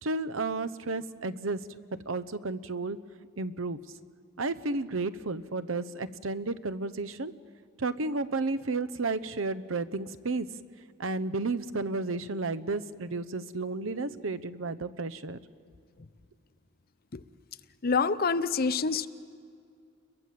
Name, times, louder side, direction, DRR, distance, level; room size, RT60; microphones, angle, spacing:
voice 1, 0.0-1.6 1.9-3.0 3.4-3.8 4.4-7.3 7.8-10.5 11.0-15.4, right 3 dB, 85° right, 15 dB, 0.9 m, -32 dB
voice 2, 17.8-19.1, left 5 dB, 50° left, 15 dB, 0.7 m, -26 dB
29.5 x 22.5 x 7.6 m, 2.3 s
head